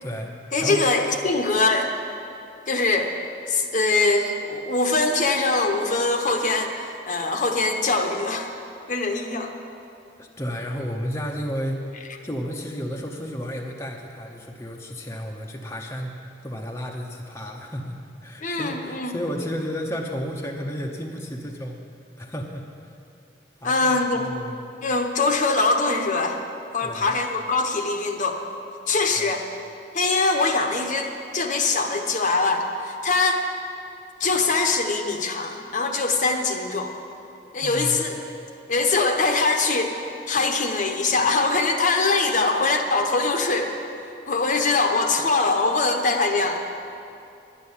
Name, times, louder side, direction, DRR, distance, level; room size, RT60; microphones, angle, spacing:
voice 1, 0.0-0.3 0.6-0.9 10.2-12.0 12.2-21.8 22.2-22.9 23.6-24.6 26.8-27.2 29.1-29.3 37.5-38.0, equal, 15° left, 0 dB, 0.8 m, -32 dB
voice 2, 0.5-1.9 2.7-3.1 3.5-8.5 8.9-9.5 18.4-19.1 23.6-24.2 24.8-26.4 26.7-28.4 28.9-29.4 29.9-33.4 34.2-36.9 37.5-38.2 38.7-40.0 40.3-43.8 44.3-46.6, left 3 dB, 45° left, 4 dB, 0.9 m, -22 dB
11.0 x 9.6 x 7.2 m, 2.6 s
head